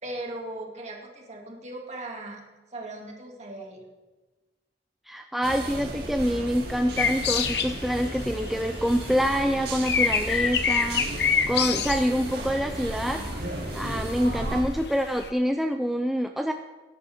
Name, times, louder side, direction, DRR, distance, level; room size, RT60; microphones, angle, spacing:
voice 1, 0.0-3.8, right 1 dB, 40° right, -1 dB, 2.3 m, -38 dB
voice 2, 5.1-11.1 11.5-13.2 13.7-16.5, equal, ahead, 5 dB, 0.4 m, -26 dB
sound 1, 5.4-14.6, right 1 dB, 60° right, 2.2 m, -35 dB
sound 2, 7.0-8.6 8.9-13.3 13.9-14.0 14.5-15.3, left 6 dB, 65° left, 0.9 m, -26 dB
18.0 x 11.0 x 3.5 m, 1.2 s
head